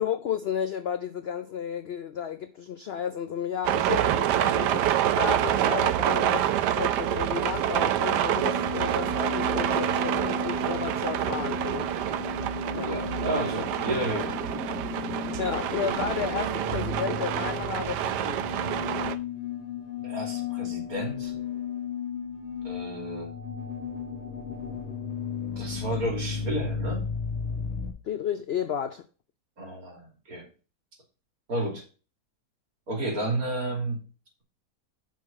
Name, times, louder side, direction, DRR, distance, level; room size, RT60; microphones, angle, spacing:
voice 1, 0.0-11.9 12.7-13.0 15.4-18.8 28.0-29.0, left 8 dB, 75° left, 0.5 m, -32 dB
sound 1, 3.6-19.2, right 11 dB, 85° right, 1.3 m, -27 dB
sound 2, 8.4-27.9, left 5 dB, 45° left, 2.0 m, -34 dB
voice 2, 12.8-14.4 20.0-21.3 22.6-23.4 25.5-27.1 29.6-30.5 31.5-31.8 32.9-34.0, right 1 dB, 60° right, 3.3 m, -32 dB
6.4 x 5.7 x 5.9 m
omnidirectional pair, 1.7 m